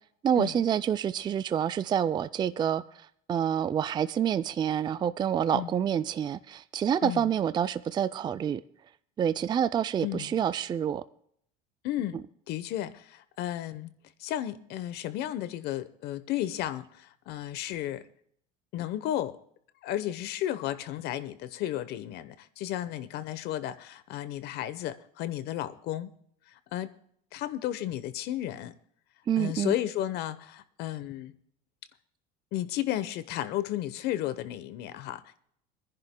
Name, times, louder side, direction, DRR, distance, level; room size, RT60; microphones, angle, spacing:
voice 1, 0.2-2.8 3.3-8.6 9.2-11.0 29.3-29.7, right 9 dB, 25° right, 0.4 m, -27 dB
voice 2, 7.0-7.3 10.0-10.4 11.8-13.9 14.2-18.0 18.7-19.4 19.8-26.1 26.7-26.9 27.3-28.7 29.4-31.3 32.5-35.4, left 12 dB, 60° left, 0.9 m, -33 dB
26.5 x 10.5 x 2.2 m
supercardioid pair, 120°, 19 cm